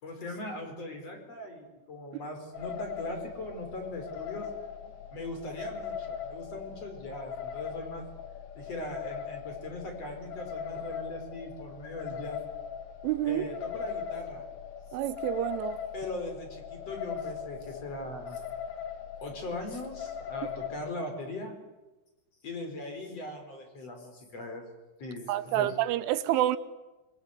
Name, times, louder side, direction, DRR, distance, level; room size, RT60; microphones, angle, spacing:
voice 1, 0.0-4.5 5.1-8.0 8.6-12.4 13.2-14.4 15.9-18.4 19.2-21.5 22.4-24.6 25.0-25.7, left 1 dB, 30° left, 5.0 m, -40 dB
sound 1, 2.5-20.8, left 8 dB, 60° left, 1.9 m, -40 dB
voice 2, 13.0-13.4 14.9-15.8 25.3-26.6, right 13 dB, 75° right, 3.4 m, -28 dB
26.5 x 24.0 x 8.1 m
omnidirectional pair, 5.9 m